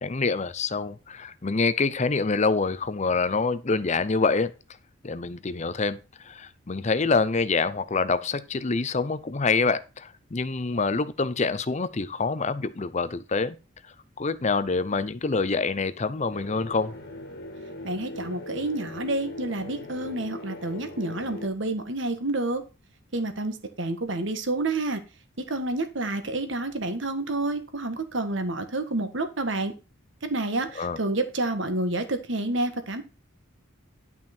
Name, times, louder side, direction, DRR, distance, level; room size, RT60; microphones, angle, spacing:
voice 1, 0.0-4.5 5.0-13.6 14.2-16.9 30.8-31.0, left 4 dB, 35° left, 0.6 m, -26 dB
sound 1, 16.3-21.5, left 2 dB, 55° left, 1.9 m, -40 dB
voice 2, 17.8-22.6 23.1-25.0 25.5-29.7 30.2-33.0, right 2 dB, 60° right, 1.6 m, -29 dB
11.0 x 6.0 x 4.4 m
head